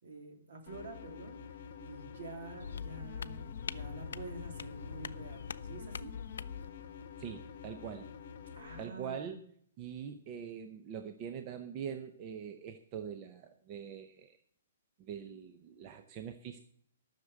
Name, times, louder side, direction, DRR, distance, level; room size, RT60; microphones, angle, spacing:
voice 1, 0.0-6.1 8.5-9.4, right 3 dB, 60° right, 3 dB, 3.2 m, -48 dB
sound 1, 0.7-8.8, left 7 dB, 40° left, 1.0 m, -49 dB
sound 2, 2.6-6.7, left 6 dB, 80° left, 0.5 m, -43 dB
voice 2, 7.2-8.1 8.8-9.4 9.8-14.4 15.0-16.6, right 8 dB, 25° right, 7 dB, 0.6 m, -43 dB
13.0 x 6.6 x 8.3 m, 0.65 s
hypercardioid pair, 175°, 0 cm